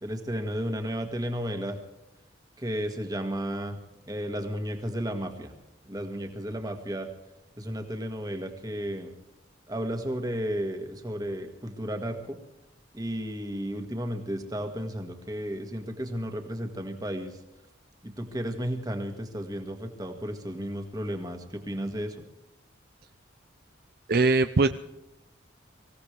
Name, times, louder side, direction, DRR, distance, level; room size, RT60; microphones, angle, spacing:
voice 1, 0.0-1.8 2.6-3.8 4.1-5.5 5.8-7.1 7.6-9.1 9.7-12.4 12.9-17.4 18.0-22.2, equal, 20° right, 5 dB, 2.0 m, -33 dB
voice 2, 24.1-24.7, right 3 dB, 50° right, 10 dB, 0.5 m, -21 dB
24.5 x 16.5 x 3.4 m, 0.93 s
head